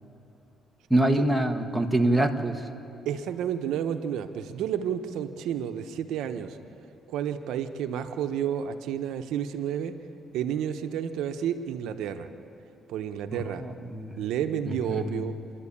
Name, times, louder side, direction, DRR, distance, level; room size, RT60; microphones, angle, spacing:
voice 1, 0.9-2.6 13.6-14.1 14.9-15.2, right 1 dB, 5° right, 4 dB, 1.4 m, -25 dB
voice 2, 3.0-6.6 7.1-9.9 10.3-12.3 12.9-13.6 14.2-15.3, right 9 dB, 85° right, 8 dB, 0.9 m, -31 dB
27.5 x 11.5 x 8.6 m, 2.8 s
cardioid pair, 90°, 0 cm